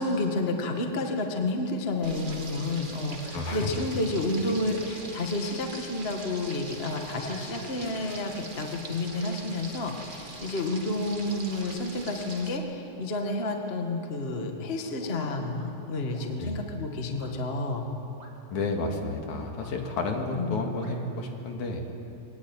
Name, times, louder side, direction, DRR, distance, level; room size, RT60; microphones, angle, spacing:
voice 1, 0.0-17.9 20.3-20.6, left 2 dB, 25° left, 3 dB, 1.3 m, -30 dB
Frying (food), 2.0-12.6, right 2 dB, 35° right, 0.7 m, -42 dB
sound 1, 2.3-2.4 2.8-7.9 8.4-8.9 9.1-9.3 9.8-11.7 12.2-13.1 13.5-15.7 16.1-16.3 17.2-17.3 18.2-18.6 19.6-20.0 20.8-20.9, right 2 dB, 20° right, 3.5 m, -54 dB
voice 2, 3.3-3.7 16.4-16.6 18.5-21.8, left 3 dB, 65° left, 3 dB, 3.2 m, -31 dB
23.0 x 19.0 x 9.2 m, 2.8 s
omnidirectional pair, 3.9 m